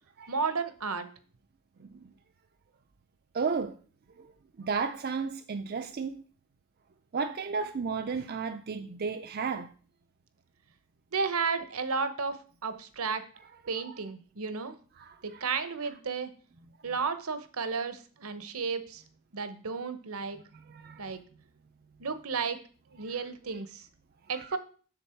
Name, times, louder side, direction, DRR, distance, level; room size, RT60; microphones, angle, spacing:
voice 1, 0.3-1.1 11.1-13.2 13.7-14.8 15.2-16.3 16.8-19.0 19.3-20.4 21.0-21.2 22.0-22.6 22.9-23.9 24.3-24.6, right 5 dB, 70° right, 1.0 m, -33 dB
voice 2, 3.3-3.8 4.2-4.3 4.6-6.2 7.1-9.7 13.8-13.9 15.0-15.4 20.7-21.1 24.3-24.5, right 5 dB, 45° right, 0.4 m, -33 dB
7.5 x 7.0 x 4.4 m
head